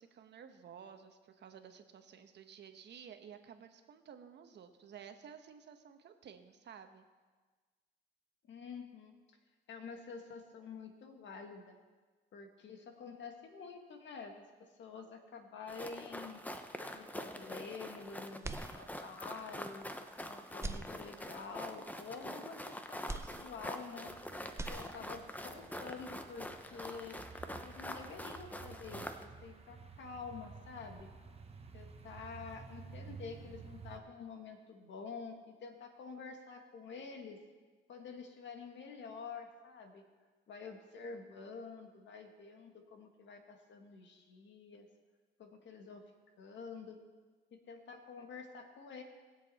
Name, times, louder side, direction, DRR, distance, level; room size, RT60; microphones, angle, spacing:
voice 1, 0.0-7.0, right 7 dB, 60° right, 7 dB, 1.2 m, -53 dB
voice 2, 8.5-9.1 9.7-11.8 12.3-14.3 14.6-16.4 16.8-19.9 20.3-24.1 24.7-27.2 27.6-31.1 31.7-37.4 37.9-40.0 40.5-44.9 45.4-46.0 46.4-47.0 47.5-49.0, left 5 dB, 65° left, 4 dB, 1.7 m, -48 dB
sound 1, 15.7-29.3, left 1 dB, 10° left, 0.9 m, -45 dB
sound 2, 18.4-19.3 19.8-19.9 20.5-21.6 23.1-24.2 24.4-25.4, right 2 dB, 15° right, 0.6 m, -44 dB
sound 3, 24.1-34.0, right 5 dB, 30° right, 1.2 m, -53 dB
19.5 x 7.7 x 4.2 m, 1.4 s
cardioid pair, 90°, 20 cm